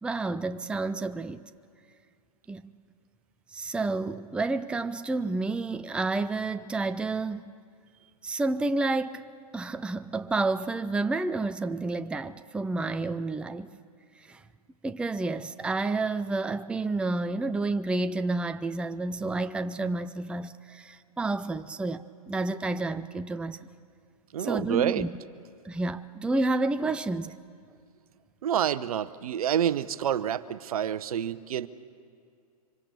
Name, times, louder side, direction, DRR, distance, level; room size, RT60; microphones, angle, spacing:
voice 1, 0.0-1.4 2.5-2.7 3.5-7.4 8.2-13.7 14.3-14.4 14.8-23.6 24.4-25.1 25.6-27.3, right 3 dB, 5° right, 0.5 m, -30 dB
voice 2, 24.3-25.1 28.4-31.7, right 9 dB, 70° right, 0.9 m, -28 dB
25.0 x 25.0 x 6.9 m
hypercardioid pair, 105°, 19 cm